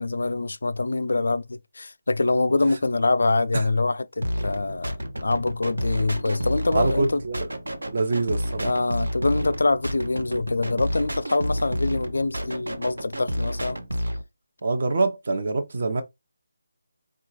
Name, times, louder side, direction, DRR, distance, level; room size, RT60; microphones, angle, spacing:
voice 1, 0.0-7.2 8.6-13.8, left 3 dB, 70° left, 0.4 m, -25 dB
sound 1, 4.2-14.2, equal, 85° right, 0.7 m, -30 dB
voice 2, 6.7-7.4 7.9-8.7 14.6-16.0, right 3 dB, 55° right, 0.8 m, -25 dB
3.8 x 2.3 x 3.1 m
figure-of-eight pair, 160°, 0 cm